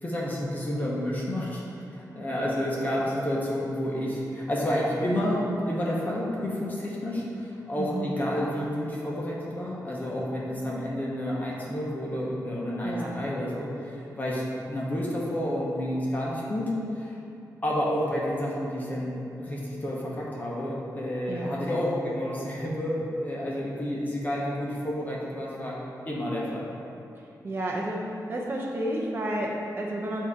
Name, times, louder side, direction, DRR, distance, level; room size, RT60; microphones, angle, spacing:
voice 1, 0.0-1.6 1.9-17.2 17.6-25.8 26.1-26.7, equal, 25° left, -5 dB, 1.0 m, -30 dB
voice 2, 7.8-8.1 12.8-13.1 21.3-21.5 27.4-30.3, right 1 dB, 35° right, -3 dB, 0.6 m, -31 dB
8.2 x 2.8 x 4.8 m, 2.7 s
wide cardioid pair, 130°, 7 cm